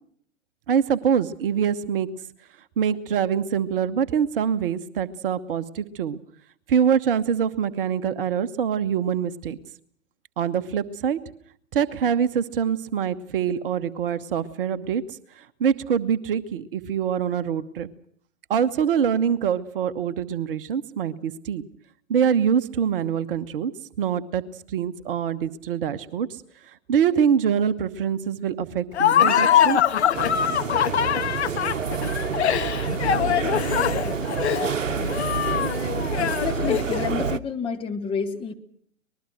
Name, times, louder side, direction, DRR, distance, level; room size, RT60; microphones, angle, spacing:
voice 1, 0.7-2.1 2.8-6.2 6.7-9.6 10.4-11.2 11.7-17.9 18.5-21.6 22.1-23.7 24.0-29.8, right 8 dB, 45° right, 11 dB, 1.1 m, -24 dB
Laughter, 28.9-37.2, left 9 dB, 55° left, 1.6 m, -23 dB
sound 1, 30.1-37.4, right 6 dB, 70° right, 1.0 m, -28 dB
voice 2, 36.4-38.5, left 5 dB, 15° left, 4 dB, 1.9 m, -29 dB
25.0 x 20.5 x 6.2 m, 0.62 s
figure-of-eight pair, 115°, 39 cm